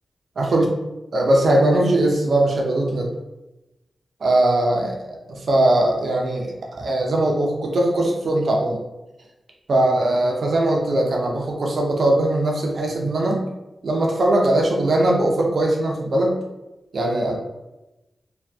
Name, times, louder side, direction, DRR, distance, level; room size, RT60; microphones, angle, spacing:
voice 1, 0.4-0.7 1.1-3.1 4.2-8.8 9.7-13.4 13.8-16.4 16.9-17.4, right 1 dB, 75° right, -1 dB, 0.5 m, -20 dB
2.6 x 2.2 x 2.2 m, 0.98 s
cardioid pair, 60°, 0 cm